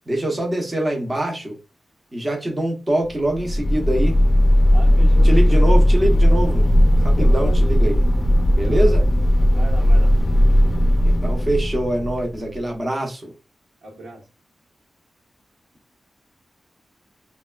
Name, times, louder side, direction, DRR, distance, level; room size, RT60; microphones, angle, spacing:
voice 1, 0.1-1.6 2.1-4.2 5.2-6.7 7.0-8.0 8.6-9.0 11.0-13.3, right 1 dB, 20° right, 0.6 m, -24 dB
sound 1, 3.2-12.5, equal, 30° left, 0.4 m, -16 dB
voice 2, 4.7-5.7 7.1-7.6 8.6-8.9 9.5-10.1 13.8-14.3, right 1 dB, 90° right, 1.0 m, -35 dB
3.2 x 2.2 x 2.2 m
wide cardioid pair, 150°, 0 cm